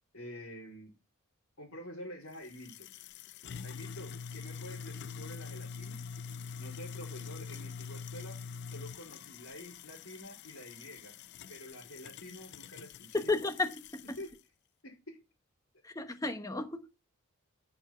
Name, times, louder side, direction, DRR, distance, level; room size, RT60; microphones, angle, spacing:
voice 1, 0.1-0.9 1.6-2.9 3.6-6.0 6.6-11.1 11.5-13.3 14.2-14.5 14.8-15.2, equal, 70° left, 4.2 m, -48 dB
sound 1, 2.3-14.4, left 6 dB, 50° left, 0.4 m, -45 dB
voice 2, 13.1-14.2 15.8-16.8, left 3 dB, 15° left, 1.1 m, -33 dB
8.5 x 6.8 x 5.7 m
head